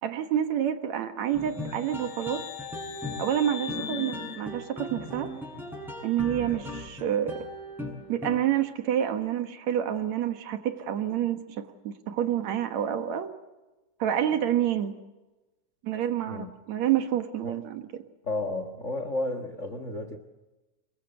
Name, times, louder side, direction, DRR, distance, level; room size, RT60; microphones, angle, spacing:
voice 1, 0.0-2.4 3.2-5.3 6.0-7.5 8.1-13.3 14.0-14.9 15.8-17.8, right 10 dB, 65° right, 8 dB, 2.4 m, -28 dB
sound 1, 1.3-8.6, left 1 dB, ahead, 6.8 m, -38 dB
sound 2, 1.4-5.4, left 9 dB, 75° left, 3.1 m, -41 dB
voice 2, 18.2-20.2, left 2 dB, 45° left, 9 dB, 1.0 m, -32 dB
26.0 x 22.0 x 8.2 m, 1.1 s
omnidirectional pair, 3.7 m